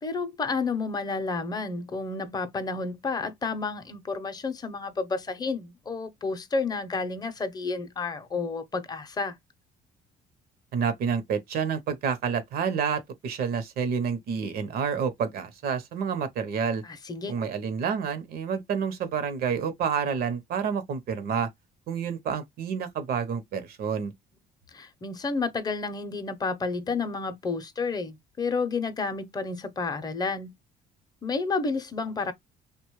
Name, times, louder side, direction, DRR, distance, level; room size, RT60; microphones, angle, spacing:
voice 1, 0.0-9.4 16.8-17.4 24.7-30.5 31.2-32.3, left 4 dB, 25° left, 0.6 m, -31 dB
voice 2, 10.7-16.8 17.3-21.5 21.9-24.1, right 6 dB, 65° right, 0.8 m, -29 dB
2.9 x 2.2 x 3.0 m
cardioid pair, 110°, 17 cm